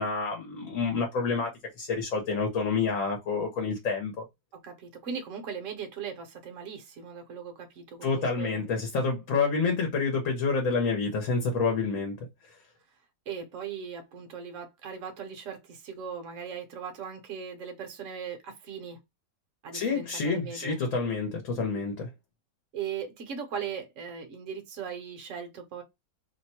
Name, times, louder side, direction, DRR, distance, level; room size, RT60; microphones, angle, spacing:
voice 1, 0.0-4.2 8.0-12.3 19.7-22.1, left 4 dB, 60° left, 1.1 m, -28 dB
voice 2, 4.5-8.6 13.3-19.0 19.6-20.8 22.7-25.8, right 7 dB, 60° right, 1.1 m, -39 dB
2.9 x 2.2 x 4.1 m
omnidirectional pair, 1.6 m